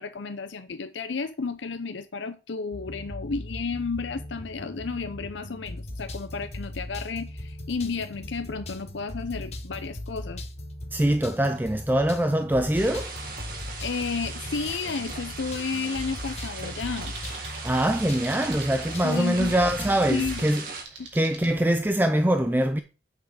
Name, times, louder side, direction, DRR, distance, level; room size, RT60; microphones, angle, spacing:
voice 1, 0.0-10.4 13.8-17.1 19.0-19.5 20.1-20.6 21.0-21.1, left 4 dB, 80° left, 0.6 m, -32 dB
sound 1, 2.7-20.4, left 1 dB, 35° left, 1.4 m, -39 dB
voice 2, 10.9-13.1 17.6-20.7 21.1-22.8, right 1 dB, 10° right, 0.5 m, -23 dB
sound 2, 12.7-20.8, right 4 dB, 50° right, 2.1 m, -38 dB
sound 3, 16.6-21.5, right 4 dB, 80° right, 3.0 m, -46 dB
8.2 x 6.3 x 4.8 m
head